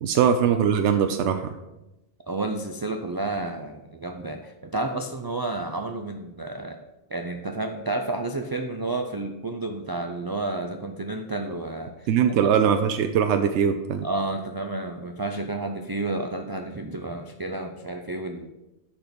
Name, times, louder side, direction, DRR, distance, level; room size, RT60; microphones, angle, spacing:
voice 1, 0.0-1.5 12.1-14.0, right 7 dB, 85° right, 7 dB, 0.9 m, -21 dB
voice 2, 2.3-6.8 7.1-12.5 14.0-18.5, right 2 dB, 35° right, 4 dB, 0.3 m, -31 dB
10.5 x 4.4 x 5.2 m, 0.97 s
omnidirectional pair, 1.2 m